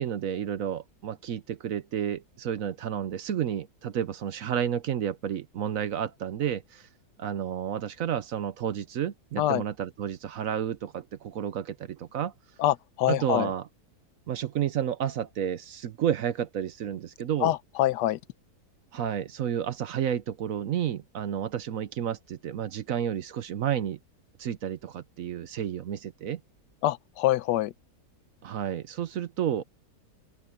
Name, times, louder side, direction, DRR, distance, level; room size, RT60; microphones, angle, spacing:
voice 1, 0.0-6.8 7.2-12.3 13.1-13.7 14.3-17.5 18.9-24.0 24.4-26.4 28.4-29.6, right 9 dB, 60° right, 1.0 m, -31 dB
voice 2, 12.6-13.5 17.4-18.2 26.8-27.7, left 14 dB, 90° left, 1.2 m, -25 dB
open air
omnidirectional pair, 1.8 m